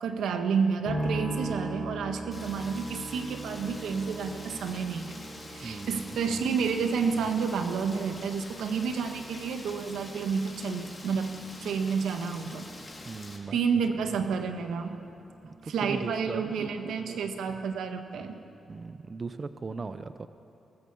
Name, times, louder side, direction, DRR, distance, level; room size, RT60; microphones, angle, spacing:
voice 1, 0.0-5.2 5.5-11.3 11.6-12.7 13.5-15.0 15.6-18.4, right 5 dB, 90° right, 6 dB, 1.6 m, -30 dB
sound 1, 0.8-16.1 16.4-17.2, right 1 dB, ahead, 4.3 m, -41 dB
Rain, 2.3-13.4, left 2 dB, 25° left, 3.6 m, -46 dB
voice 2, 5.6-6.4 13.0-13.6 14.1-14.2 15.4-16.4 18.7-20.3, right 4 dB, 35° right, 11 dB, 0.8 m, -38 dB
22.0 x 20.0 x 7.1 m, 2.8 s
cardioid pair, 90°, 0 cm